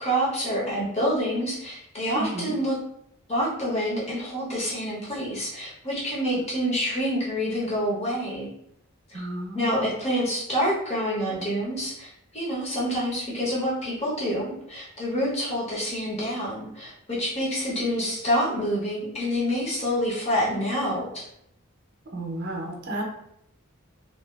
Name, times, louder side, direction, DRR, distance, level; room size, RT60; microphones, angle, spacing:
voice 1, 0.0-2.8 3.3-8.5 9.1-9.2 9.5-21.2, equal, 30° left, -6 dB, 0.8 m, -27 dB
voice 2, 2.1-2.6 9.1-9.9 22.1-23.0, right 1 dB, 45° right, 0 dB, 0.5 m, -32 dB
2.7 x 2.3 x 2.3 m, 0.75 s
head